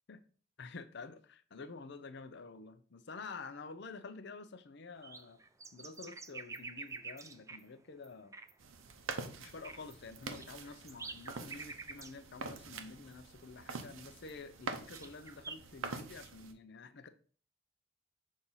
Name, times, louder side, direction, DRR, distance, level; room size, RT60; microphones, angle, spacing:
voice 1, 0.6-5.4 5.7-8.3 9.4-17.1, left 4 dB, 60° left, 0.6 m, -49 dB
sound 1, 5.0-7.6 8.0-8.1 8.3-8.5 9.1-9.2 9.5-12.2 12.4-12.5 13.1-13.2 13.8-13.9 14.3-14.4 14.7-15.6, right 4 dB, 15° right, 0.4 m, -47 dB
sound 2, 8.6-16.5, right 4 dB, 85° right, 0.7 m, -45 dB
6.3 x 2.7 x 5.5 m
head